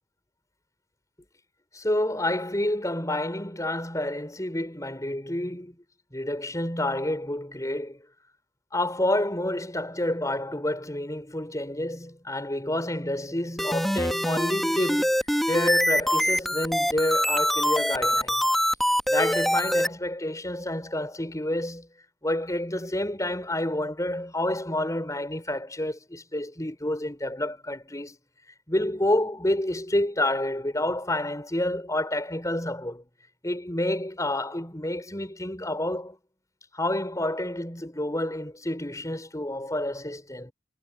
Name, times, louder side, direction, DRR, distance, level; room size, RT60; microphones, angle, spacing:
voice 1, 1.7-5.8 6.1-8.0 8.7-15.1 15.5-18.4 19.1-21.9 22.2-28.2 28.7-33.1 33.4-36.2 36.7-40.5, left 1 dB, 15° left, 5.8 m, -29 dB
sound 1, 13.6-19.9, equal, ahead, 1.8 m, -24 dB
head